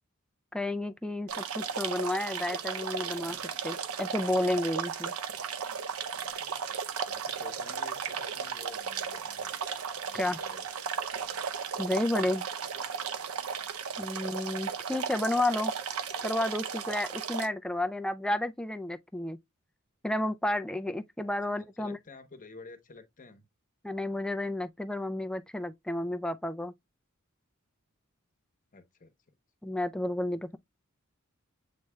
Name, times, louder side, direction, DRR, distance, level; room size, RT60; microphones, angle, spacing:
voice 1, 0.5-3.4 3.6-5.1 10.1-10.4 11.8-12.4 14.0-15.7 16.2-19.4 20.0-22.0 23.8-26.7 29.6-30.6, left 1 dB, 5° left, 0.3 m, -31 dB
sound 1, 1.3-17.5, right 6 dB, 85° right, 0.6 m, -35 dB
voice 2, 7.1-9.5 10.0-10.6 21.6-23.5 28.7-29.4, left 3 dB, 40° left, 0.9 m, -51 dB
7.5 x 3.2 x 2.2 m
head